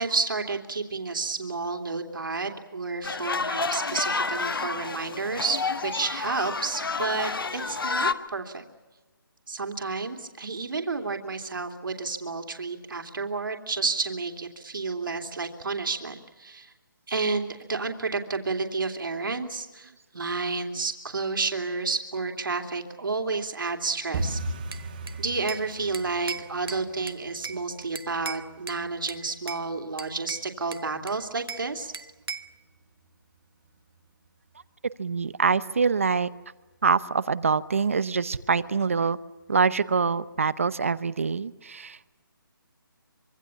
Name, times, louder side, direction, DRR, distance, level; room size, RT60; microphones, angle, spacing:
voice 1, 0.0-8.6 9.5-16.7 17.1-24.4 25.2-31.9, right 4 dB, 65° right, 4 dB, 2.9 m, -31 dB
sound 1, 3.0-8.1, left 4 dB, 75° left, 1.5 m, -29 dB
sound 2, 24.1-34.9 35.1-35.8 36.1-36.4 36.6-37.0 37.3-37.4 37.9-38.4 38.8-38.9 39.4-39.5, right 2 dB, 20° right, 2.1 m, -40 dB
Bell / Glass, 24.7-25.7 25.9-27.6 28.0-28.8 29.1-29.7 30.0-31.7 31.9-32.6, right 5 dB, 80° right, 1.3 m, -38 dB
voice 2, 35.0-36.3 36.8-39.2 39.5-42.1, right 5 dB, 35° right, 17 dB, 0.8 m, -25 dB
25.0 x 24.0 x 7.2 m, 1.2 s
hypercardioid pair, 175°, 12 cm